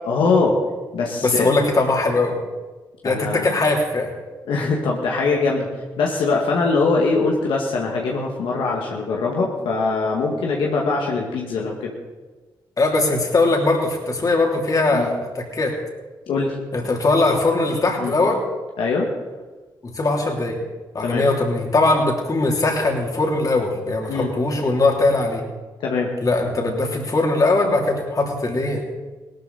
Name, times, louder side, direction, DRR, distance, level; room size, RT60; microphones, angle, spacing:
voice 1, 0.0-0.6 0.9-1.5 3.0-3.5 4.5-5.7 6.0-11.9 14.9-15.1 16.3-16.6 18.0-18.1 18.8-19.1 21.0-21.3 24.1-24.3 25.8-26.1, left 3 dB, 85° left, -1 dB, 1.9 m, -22 dB
voice 2, 1.2-2.4 3.0-4.1 12.8-15.8 16.7-18.4 19.8-20.6 20.9-25.4 26.2-28.8, left 2 dB, 45° left, 1 dB, 3.4 m, -20 dB
17.5 x 13.0 x 4.2 m, 1.3 s
supercardioid pair, 55°, 9 cm